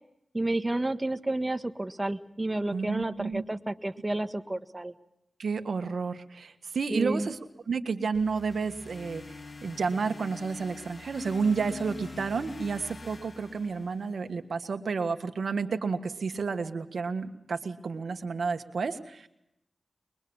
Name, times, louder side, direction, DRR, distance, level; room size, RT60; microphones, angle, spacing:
voice 1, 0.3-4.9 6.9-7.3, right 2 dB, 25° right, 8 dB, 1.6 m, -30 dB
voice 2, 2.7-3.4 5.4-7.4 7.7-9.2 9.6-19.3, right 5 dB, 80° right, 8 dB, 1.6 m, -31 dB
sound 1, 8.1-14.3, left 3 dB, 50° left, 3.2 m, -45 dB
24.0 x 22.0 x 7.1 m, 0.81 s
cardioid pair, 50°, 0 cm